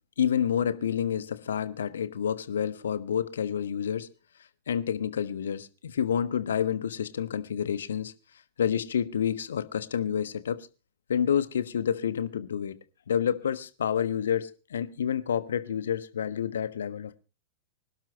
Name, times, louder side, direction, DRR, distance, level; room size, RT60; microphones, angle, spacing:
voice 1, 0.2-4.1 4.7-8.1 8.6-10.7 11.1-12.8 13.1-17.2, left 8 dB, 65° left, 1.2 m, -29 dB
25.5 x 12.0 x 3.0 m
figure-of-eight pair, 95°, 0 cm